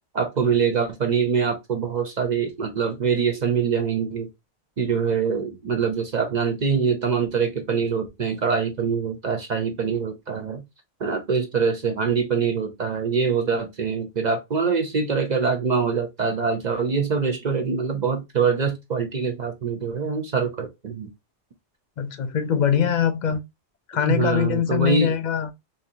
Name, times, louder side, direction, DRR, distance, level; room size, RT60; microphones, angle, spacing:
voice 1, 0.1-4.3 4.8-10.6 11.0-21.1 24.0-25.1, right 6 dB, 50° right, 0.7 m, -24 dB
voice 2, 22.0-23.4 23.9-25.5, left 8 dB, 55° left, 0.5 m, -22 dB
4.2 x 2.6 x 2.6 m
omnidirectional pair, 1.0 m